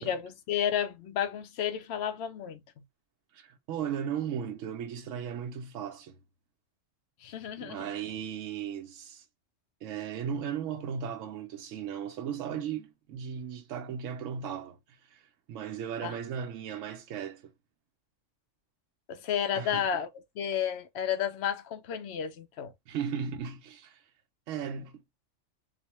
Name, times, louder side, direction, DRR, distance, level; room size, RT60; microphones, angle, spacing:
voice 1, 0.0-2.6 7.2-7.8 16.0-16.1 19.1-20.1 20.4-22.7, left 9 dB, 65° left, 0.8 m, -32 dB
voice 2, 3.3-6.2 7.6-9.3 9.8-17.5 19.5-19.9 22.9-24.1 24.5-25.0, right 8 dB, 75° right, 0.9 m, -36 dB
4.2 x 2.1 x 2.9 m
omnidirectional pair, 1.3 m